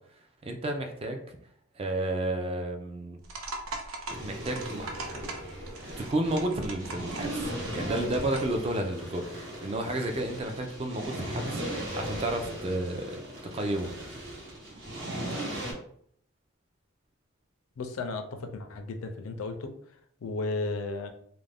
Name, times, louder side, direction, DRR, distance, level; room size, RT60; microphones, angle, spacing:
voice 1, 0.4-1.2 1.8-3.2 4.2-5.3 6.0-13.2 13.5-13.9, right 1 dB, 30° right, 4 dB, 0.4 m, -32 dB
sound 1, 3.2-8.6, right 2 dB, 80° right, 0.5 m, -41 dB
sound 2, 4.1-15.7, right 1 dB, 65° right, 0.9 m, -38 dB
voice 2, 17.8-19.7 20.2-21.1, left 3 dB, 85° left, 7 dB, 0.4 m, -34 dB
2.4 x 2.1 x 3.3 m, 0.64 s
head